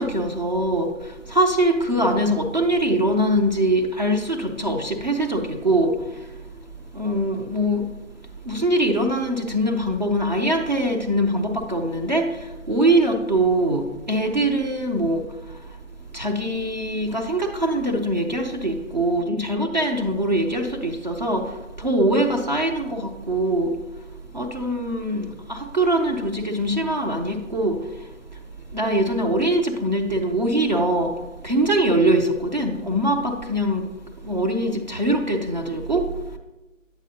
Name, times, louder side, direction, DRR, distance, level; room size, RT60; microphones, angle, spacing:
voice 1, 0.0-6.3 6.9-7.9 8.4-15.8 16.1-23.8 24.3-28.4 28.7-33.9 34.2-36.4, right 1 dB, 35° right, 1 dB, 0.5 m, -23 dB
9.1 x 7.1 x 2.7 m, 1.1 s
figure-of-eight pair, 160°, 39 cm